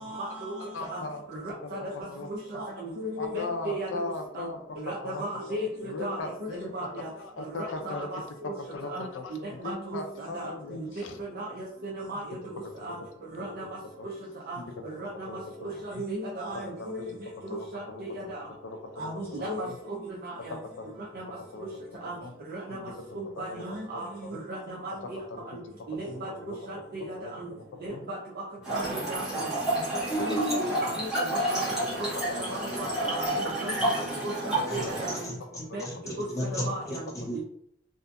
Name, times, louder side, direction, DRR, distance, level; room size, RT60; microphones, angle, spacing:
voice 1, 0.0-1.0 1.4-1.8 2.3-4.0 4.3-4.5 4.8-6.5 6.7-7.1 7.6-8.2 8.9-9.0 9.3-10.9 11.2-12.4 12.8-13.0 13.3-13.6 14.5-14.6 15.0-15.3 15.6-17.1 17.4-18.5 19.0-19.7 20.1-20.5 21.1-21.2 22.0-22.2 22.5-24.9 25.9-26.3 26.7-27.0 27.4-27.5 27.8-28.2 28.7-29.5 29.7-31.6 32.0-32.1 32.5-33.9 34.2-35.3 35.7-35.8 36.2-36.3 36.7-37.0 37.3-37.4, right 1 dB, 55° right, -5 dB, 0.5 m, -36 dB
voice 2, 0.7-1.2 1.6-1.7 2.1-2.3 3.2-4.6 5.0-5.2 5.5-5.6 5.8-6.7 7.4-8.3 8.6-11.2 12.8-12.9 14.0-14.1 14.6-14.7 15.3-16.0 16.8-16.9 17.5-18.0 18.6-19.8 20.5-20.9 21.5-21.7 22.2-22.3 22.7-22.8 23.5-23.6 23.9-24.3 26.0-26.6 27.2-28.0 29.3-29.5 30.1-30.2 30.8-30.9 32.3-32.8 33.8-33.9 34.8-34.9 35.7-35.9 36.5-36.6, left 3 dB, 70° left, 5 dB, 0.4 m, -39 dB
Trickle dribble / Fill (with liquid), 28.6-35.3, right 1 dB, 5° right, 1.0 m, -29 dB
voice 3, 35.2-37.4, left 1 dB, 15° left, -4 dB, 0.6 m, -35 dB
2.6 x 2.5 x 2.3 m, 0.72 s
head